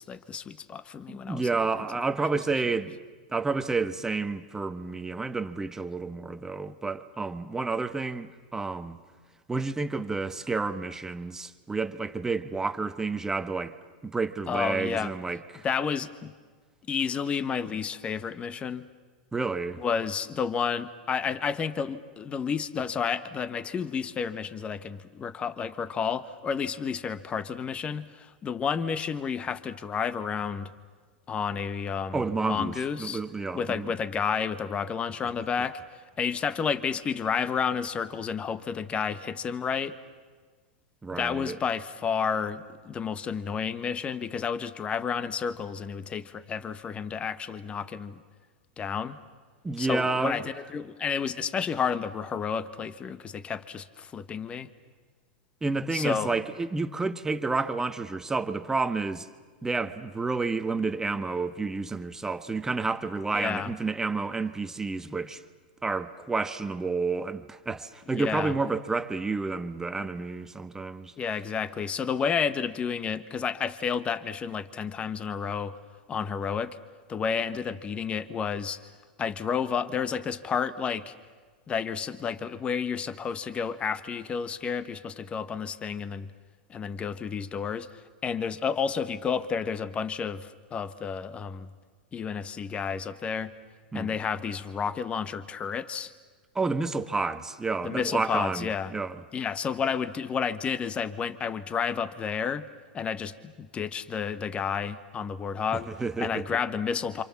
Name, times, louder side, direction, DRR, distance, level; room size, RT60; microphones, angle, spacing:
voice 1, 0.0-1.5 14.5-15.1 15.6-16.3 16.9-18.9 19.8-30.7 31.3-33.2 33.5-35.8 36.2-39.9 41.1-48.2 48.8-49.2 49.8-54.7 55.9-56.3 63.3-63.7 68.1-68.5 71.2-75.8 76.1-76.8 77.1-78.8 79.2-81.1 81.7-86.3 86.7-91.7 92.1-93.5 93.9-96.1 97.8-98.9 99.3-102.7 102.9-105.9 106.2-107.2, left 6 dB, 25° left, 1.3 m, -31 dB
voice 2, 1.1-3.0 3.3-9.0 9.5-13.8 14.0-15.7 19.3-19.8 32.1-33.9 41.0-41.6 49.6-50.5 55.6-59.3 59.6-65.4 65.8-71.1 93.9-94.2 96.5-99.2 105.7-106.4, right 3 dB, 10° right, 1.3 m, -30 dB
28.0 x 26.5 x 7.3 m
hypercardioid pair, 120°, 5 cm